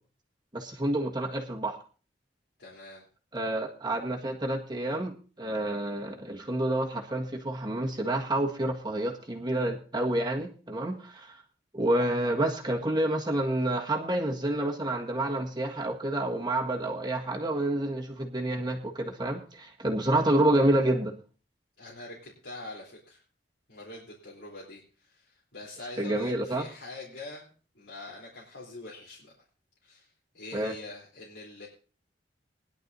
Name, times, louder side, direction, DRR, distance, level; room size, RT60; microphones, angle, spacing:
voice 1, 0.5-1.8 3.3-11.4 11.7-21.1 26.0-26.7 30.5-30.7, right 1 dB, 25° right, 1 dB, 1.7 m, -28 dB
voice 2, 2.6-3.0 21.8-23.2 23.7-27.5 27.7-29.3 29.8-31.7, left 2 dB, 85° left, -5 dB, 3.5 m, -44 dB
20.5 x 11.0 x 2.7 m, 0.37 s
head